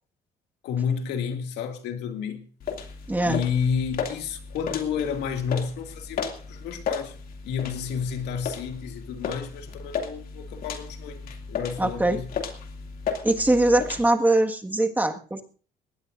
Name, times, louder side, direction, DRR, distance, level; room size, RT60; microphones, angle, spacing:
voice 1, 0.6-2.4 3.2-7.2 7.4-12.3, left 7 dB, 85° left, 2.3 m, -30 dB
sound 1, 2.6-14.0, left 6 dB, 60° left, 2.5 m, -35 dB
voice 2, 3.1-3.4 11.8-12.2 13.2-15.4, right 2 dB, 10° right, 1.7 m, -22 dB
20.5 x 18.0 x 2.6 m
cardioid pair, 110°, 17 cm